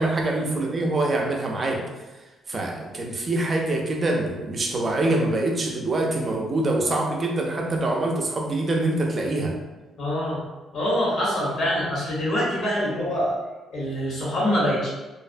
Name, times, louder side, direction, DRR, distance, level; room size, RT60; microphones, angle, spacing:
voice 1, 0.0-1.8 2.5-9.6, right 2 dB, 40° right, 0 dB, 0.5 m, -25 dB
voice 2, 10.0-10.4 10.7-13.3 13.7-14.9, equal, 70° left, -6 dB, 1.1 m, -25 dB
2.5 x 2.0 x 2.5 m, 1.1 s
cardioid pair, 90°, 0 cm